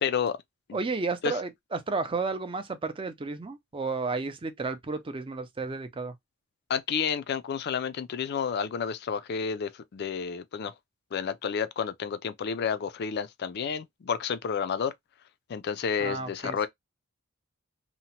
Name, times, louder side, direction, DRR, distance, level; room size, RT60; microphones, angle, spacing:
voice 1, 0.0-0.4 0.7-0.8 1.2-1.4 6.7-10.7 11.1-14.9 15.5-16.7, left 6 dB, 50° left, 0.4 m, -30 dB
voice 2, 0.7-6.1 16.0-16.7, right 4 dB, 25° right, 0.4 m, -32 dB
2.8 x 2.1 x 2.8 m
head